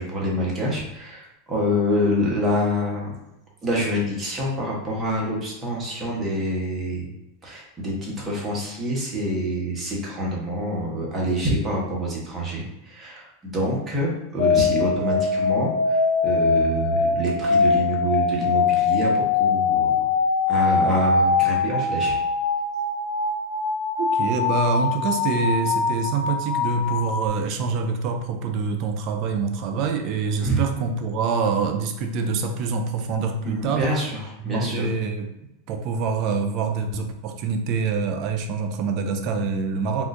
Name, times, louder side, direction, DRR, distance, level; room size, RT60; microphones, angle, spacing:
voice 1, 0.0-3.1 3.6-7.1 7.4-20.1 20.5-22.2 30.4-30.6 33.4-34.9, equal, 20° right, -4 dB, 1.1 m, -26 dB
sound 1, 14.4-27.3, left 4 dB, 65° left, 0.6 m, -22 dB
voice 2, 24.0-33.9 34.4-35.3 35.7-40.1, right 4 dB, 50° right, 5 dB, 0.5 m, -25 dB
3.5 x 2.5 x 2.6 m, 0.90 s
hypercardioid pair, 110°, 0 cm